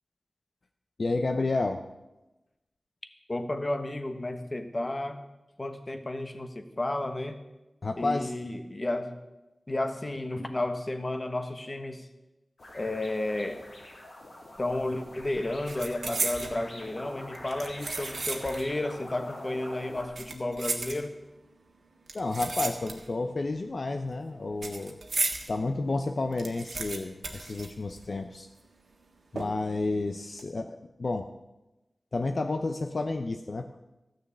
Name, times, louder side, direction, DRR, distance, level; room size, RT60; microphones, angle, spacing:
voice 1, 1.0-1.8 7.8-8.3 22.1-25.0 25.5-28.5 29.3-31.3 32.1-33.8, left 3 dB, 60° left, 6 dB, 0.6 m, -31 dB
voice 2, 3.3-5.2 5.6-7.4 8.0-9.2 9.7-12.1 12.7-13.6 14.6-21.1, left 1 dB, 35° left, 8 dB, 1.2 m, -32 dB
sound 1, 12.6-20.0, left 1 dB, 85° left, 3.0 m, -45 dB
sound 2, 14.6-14.9 15.2-16.6 17.3-18.7 19.0-19.1 20.0-21.4 22.1-23.3 23.5-25.5 25.9-26.0 26.2-28.3 28.6-28.7 29.4-29.8 30.2-30.4, right 3 dB, 80° right, 1.5 m, -35 dB
14.0 x 6.4 x 8.4 m, 1.0 s
wide cardioid pair, 80°, 0 cm